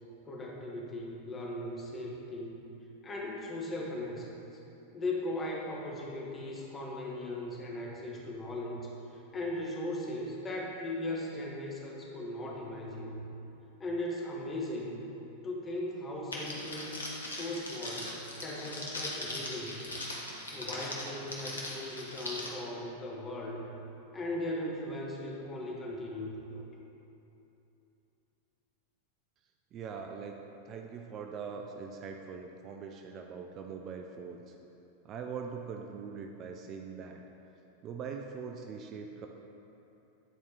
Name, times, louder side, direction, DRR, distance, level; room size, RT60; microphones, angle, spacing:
voice 1, 0.3-2.6 3.0-4.4 4.9-13.2 13.8-15.0 15.4-16.9 17.2-18.1 18.4-19.9 20.5-23.7 24.1-26.6, left 1 dB, 20° left, -3 dB, 1.1 m, -38 dB
Crackle, 16.3-22.5, left 1 dB, 75° left, 1.0 m, -40 dB
voice 2, 29.7-30.4 30.7-34.6 35.0-37.2 37.8-39.3, right 6 dB, 35° right, 3 dB, 0.4 m, -42 dB
9.1 x 4.2 x 3.4 m, 2.9 s
figure-of-eight pair, 90°, 0 cm